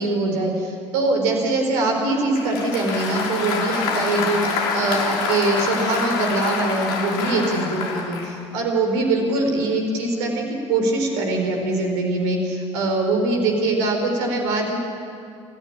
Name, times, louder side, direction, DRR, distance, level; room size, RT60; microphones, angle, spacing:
voice 1, 0.0-14.7, right 2 dB, 65° right, 2 dB, 4.5 m, -23 dB
Applause, 2.4-8.4, left 4 dB, 60° left, 2.8 m, -26 dB
25.0 x 14.0 x 8.8 m, 2.4 s
figure-of-eight pair, 60°, 15 cm